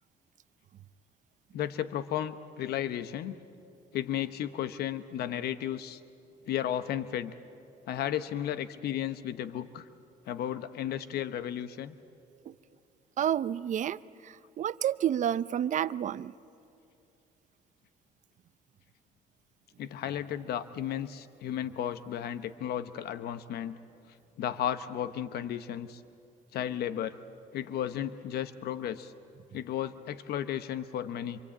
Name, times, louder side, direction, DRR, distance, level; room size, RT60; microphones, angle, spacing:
voice 1, 1.5-3.4 3.9-6.0 6.5-7.3 7.9-9.9 10.3-12.0 19.8-23.8 24.4-26.0 26.5-27.2 27.5-29.1 29.5-31.4, left 10 dB, 70° left, 12 dB, 0.9 m, -34 dB
voice 2, 13.2-16.3, right 10 dB, 45° right, 16 dB, 0.6 m, -30 dB
26.5 x 26.0 x 8.6 m, 2.6 s
cardioid pair, 110°, 17 cm